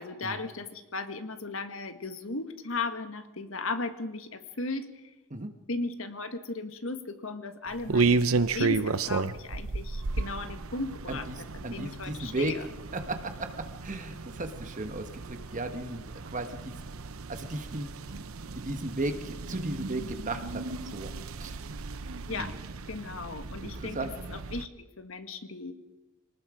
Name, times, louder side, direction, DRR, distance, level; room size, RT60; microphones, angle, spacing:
voice 1, 0.0-5.1 5.7-12.7 22.3-22.5 22.9-25.7, left 3 dB, 70° left, 8 dB, 1.7 m, -36 dB
sound 1, 7.7-24.7, right 4 dB, 90° right, 0.8 m, -33 dB
voice 2, 11.6-12.5 12.9-16.7 17.3-17.9 18.5-20.6 20.9-21.1 21.4-21.6 22.4-22.6 23.6-24.4, right 2 dB, 40° right, 7 dB, 1.5 m, -35 dB
26.5 x 19.0 x 5.1 m, 1.1 s
head